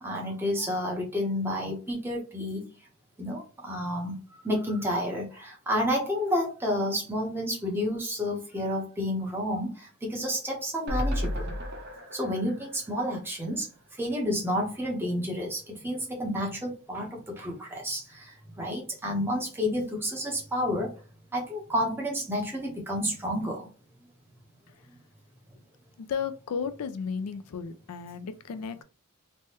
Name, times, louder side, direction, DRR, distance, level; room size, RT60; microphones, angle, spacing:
voice 1, 0.0-2.7 3.2-11.5 12.1-20.9 21.3-23.7, equal, 10° right, 0.8 m, -30 dB
sound 1, 10.9-14.1 14.5-14.6 14.8-14.9, equal, 50° right, 0.5 m, -34 dB
voice 2, 26.0-28.8, left 6 dB, 85° left, 0.4 m, -34 dB
3.3 x 2.2 x 2.8 m
head